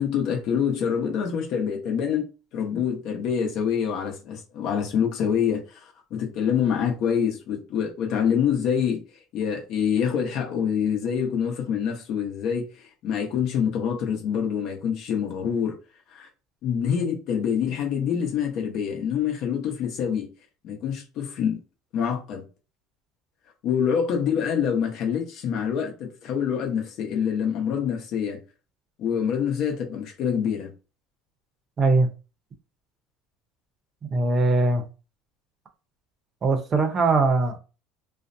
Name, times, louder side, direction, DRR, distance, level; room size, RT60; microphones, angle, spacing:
voice 1, 0.0-9.0 9.3-15.8 16.1-16.3 16.6-20.3 20.6-21.6 21.9-22.4 23.6-28.4 29.0-30.7, left 7 dB, 60° left, 0.8 m, -26 dB
voice 2, 31.8-32.1 34.1-34.8 36.4-37.6, right 3 dB, 35° right, 0.6 m, -21 dB
2.5 x 2.1 x 2.6 m
supercardioid pair, 110°, 0 cm